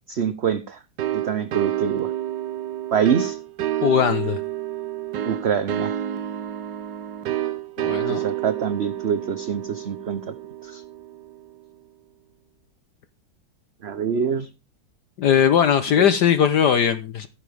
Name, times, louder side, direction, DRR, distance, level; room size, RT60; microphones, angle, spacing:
voice 1, 0.1-0.8 1.1-2.1 2.9-3.4 5.3-5.9 8.1-10.3 10.6-10.8 13.8-14.5 16.0-16.1, right 7 dB, 45° right, 0.9 m, -25 dB
sound 1, 1.0-11.5, right 12 dB, 70° right, 1.5 m, -29 dB
voice 2, 3.8-4.4 7.8-8.2 15.2-17.3, left 8 dB, 65° left, 1.5 m, -19 dB
15.0 x 10.0 x 3.5 m
omnidirectional pair, 2.0 m